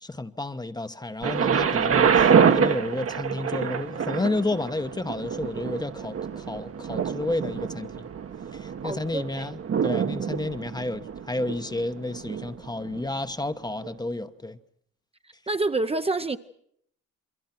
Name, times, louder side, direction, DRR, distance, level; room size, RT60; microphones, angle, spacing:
voice 1, 0.0-8.1 8.5-14.6, left 2 dB, 15° left, 1.1 m, -31 dB
Thunder, 1.2-13.1 13.8-13.9, right 7 dB, 50° right, 1.4 m, -26 dB
voice 2, 8.8-9.5 15.5-16.4, right 2 dB, 20° right, 0.9 m, -27 dB
29.0 x 23.0 x 6.0 m
cardioid pair, 90°, 30 cm